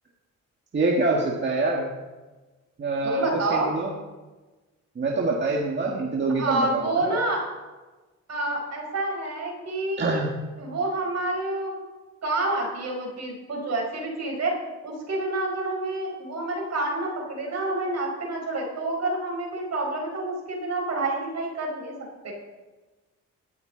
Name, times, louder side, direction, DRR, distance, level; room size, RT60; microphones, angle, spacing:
voice 1, 0.7-1.9 2.8-3.9 5.0-7.2 10.0-10.3, right 3 dB, 40° right, -2 dB, 1.7 m, -25 dB
voice 2, 3.0-3.7 6.4-7.4 8.3-10.2 10.6-11.7 12.2-14.5 14.8-21.9 22.2-22.3, right 2 dB, 60° right, 0 dB, 5.0 m, -28 dB
18.0 x 13.0 x 3.9 m, 1.2 s
wide cardioid pair, 135°, 30 cm